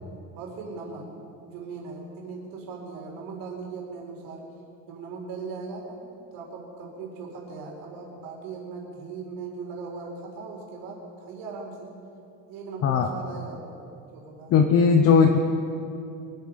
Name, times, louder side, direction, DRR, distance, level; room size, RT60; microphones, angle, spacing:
voice 1, 0.4-1.0 1.4-4.4 4.9-6.0 6.3-11.9 12.5-13.8 14.1-14.5, right 4 dB, 60° right, -1 dB, 4.4 m, -39 dB
voice 2, 14.5-15.4, left 6 dB, 40° left, 4 dB, 0.9 m, -18 dB
24.0 x 9.3 x 5.8 m, 2.7 s
cardioid pair, 165°, 37 cm